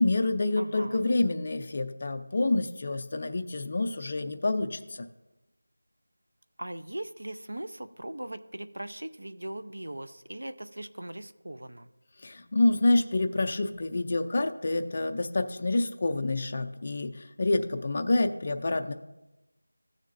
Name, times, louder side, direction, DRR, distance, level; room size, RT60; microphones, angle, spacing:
voice 1, 0.0-5.1 12.2-18.9, left 2 dB, 20° left, 6 dB, 0.4 m, -27 dB
voice 2, 0.6-1.1 6.6-11.9, right 1 dB, 70° right, 12 dB, 0.7 m, -39 dB
15.0 x 6.6 x 2.5 m, 0.99 s
figure-of-eight pair, 180°, 0 cm